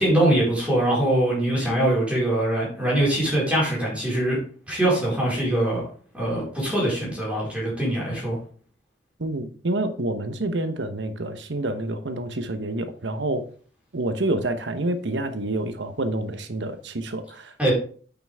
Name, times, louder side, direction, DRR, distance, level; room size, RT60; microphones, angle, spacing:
voice 1, 0.0-4.4 4.7-5.8 6.1-8.4 17.6-17.7, right 1 dB, 5° right, 4.2 m, -22 dB
voice 2, 9.2-13.4 13.9-17.7, right 2 dB, 70° right, 1.0 m, -28 dB
9.2 x 5.9 x 3.5 m
head